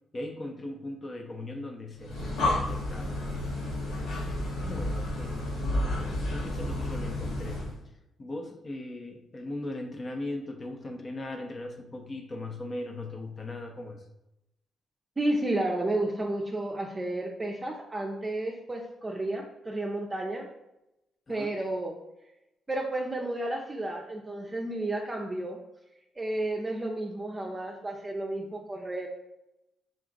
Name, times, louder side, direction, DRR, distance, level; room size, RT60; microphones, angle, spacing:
voice 1, 0.1-3.2 3.8-5.5 5.8-7.7 8.2-14.0 21.3-21.5, left 2 dB, 40° left, 4 dB, 0.6 m, -39 dB
Breathing, 2.0-7.8, left 1 dB, 85° left, 1.1 m, -31 dB
voice 2, 15.2-20.5 21.3-22.0 22.7-25.6 26.2-29.1, right 1 dB, 25° right, 0 dB, 0.5 m, -32 dB
3.8 x 2.4 x 3.8 m, 0.90 s
supercardioid pair, 60°, 0 cm